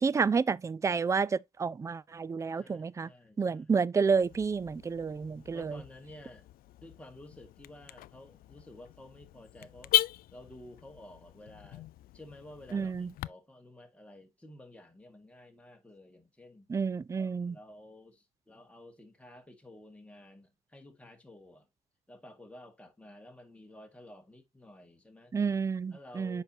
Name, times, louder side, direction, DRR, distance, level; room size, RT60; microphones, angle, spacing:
voice 1, 0.0-3.1 3.4-5.8 12.7-13.1 16.7-17.5 25.3-26.4, right 5 dB, 20° right, 0.4 m, -30 dB
voice 2, 2.5-3.8 5.5-6.5 6.8-9.9 10.3-16.7 17.2-21.7 22.1-25.3 25.9-26.4, left 1 dB, 5° left, 1.9 m, -52 dB
Car / Alarm, 4.1-13.3, left 14 dB, 60° left, 0.4 m, -37 dB
7.9 x 5.6 x 2.8 m
cardioid pair, 110°, 17 cm